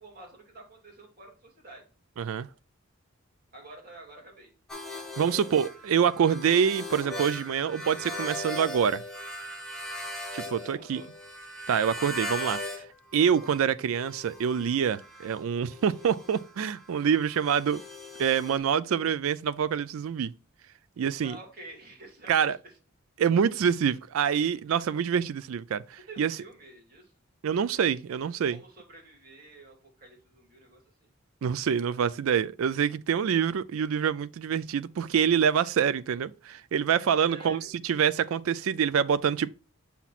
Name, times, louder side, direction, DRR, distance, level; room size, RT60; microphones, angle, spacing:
voice 1, 0.0-1.8 3.5-4.5 5.1-5.4 10.7-11.1 21.0-22.8 26.1-27.1 28.5-31.1 37.3-37.7, right 2 dB, 45° right, 2.5 m, -49 dB
voice 2, 2.2-2.5 5.2-9.0 10.3-11.0 11.7-12.8 13.1-17.8 18.2-20.3 21.0-21.4 22.3-22.6 23.2-26.3 27.4-28.6 31.4-39.5, right 7 dB, 75° right, 0.4 m, -26 dB
sound 1, 4.7-12.9 13.1-18.6, left 1 dB, ahead, 1.6 m, -39 dB
7.0 x 5.8 x 2.4 m
head